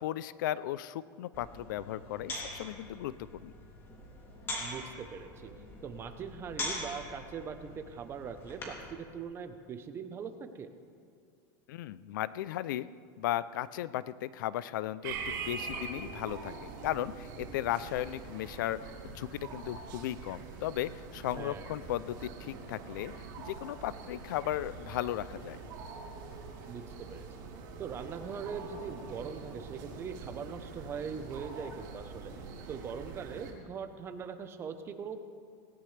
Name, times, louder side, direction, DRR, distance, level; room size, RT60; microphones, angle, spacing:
voice 1, 0.0-3.5 11.7-12.9 13.2-23.1 23.4-25.6, left 13 dB, 80° left, 17 dB, 0.5 m, -36 dB
sound 1, 1.3-8.9, left 1 dB, 25° left, 2.9 m, -43 dB
voice 2, 4.6-5.5 5.8-10.7 21.3-21.7 26.6-27.2 27.8-32.3 32.7-35.2, right 6 dB, 25° right, 9 dB, 0.9 m, -41 dB
sound 2, 15.0-33.5, right 5 dB, 65° right, 3.1 m, -44 dB
18.5 x 18.0 x 3.4 m, 2.2 s
supercardioid pair, 155°, 10 cm